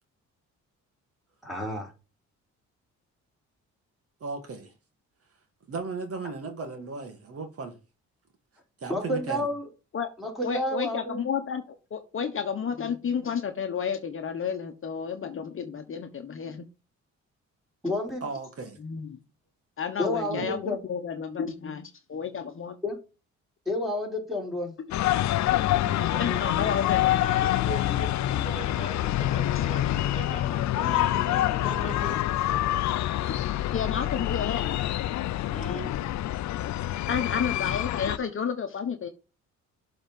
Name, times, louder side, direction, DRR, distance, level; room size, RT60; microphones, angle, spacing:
voice 1, 1.4-1.9 8.9-9.7 10.2-11.3 17.8-18.2 20.0-20.8 22.8-23.0 23.6-24.7, left 1 dB, ahead, 3.5 m, -30 dB
voice 2, 4.2-4.7 5.7-7.8 8.8-9.5 18.2-18.8 20.3-20.5, right 4 dB, 50° right, 1.8 m, -36 dB
voice 3, 10.4-16.6 18.8-19.2 19.8-22.8 26.2-27.2 29.5-29.7 33.7-34.8 37.1-39.1, left 7 dB, 45° left, 1.2 m, -31 dB
sound 1, 24.9-38.2, left 13 dB, 65° left, 0.6 m, -26 dB
voice 4, 25.8-32.2 35.5-35.9, left 1 dB, 25° left, 2.9 m, -39 dB
7.2 x 3.9 x 5.4 m
cardioid pair, 90°, 30 cm